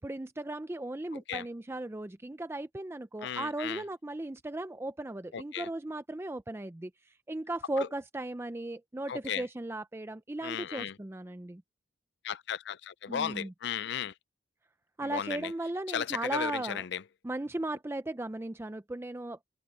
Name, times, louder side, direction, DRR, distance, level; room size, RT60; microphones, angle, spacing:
voice 1, 0.0-6.9 7.3-11.6 13.1-13.5 15.0-16.8 17.2-19.4, right 2 dB, 15° right, 0.4 m, -36 dB
voice 2, 3.2-3.8 5.3-5.7 7.8-7.9 9.1-9.4 10.4-11.0 12.2-14.1 15.0-15.5 15.9-17.0, left 8 dB, 65° left, 0.5 m, -35 dB
head